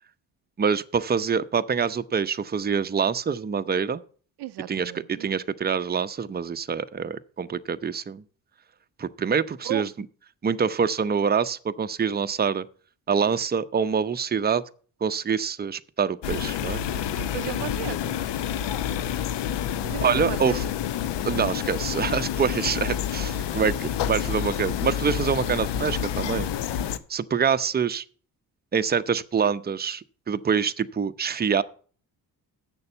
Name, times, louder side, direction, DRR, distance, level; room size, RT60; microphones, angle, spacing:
voice 1, 0.6-4.0 4.7-8.2 9.0-9.9 10.4-12.7 13.1-14.6 15.0-16.8 20.0-20.6 21.2-26.5 27.1-28.0 28.7-31.6, right 6 dB, 20° right, 0.6 m, -25 dB
voice 2, 4.4-5.3 9.6-9.8 16.9-18.2 19.8-20.5, right 15 dB, 60° right, 0.5 m, -35 dB
sound 1, 16.2-27.0, left 9 dB, 65° left, 0.8 m, -28 dB
8.1 x 6.6 x 6.7 m
supercardioid pair, 55°, 45 cm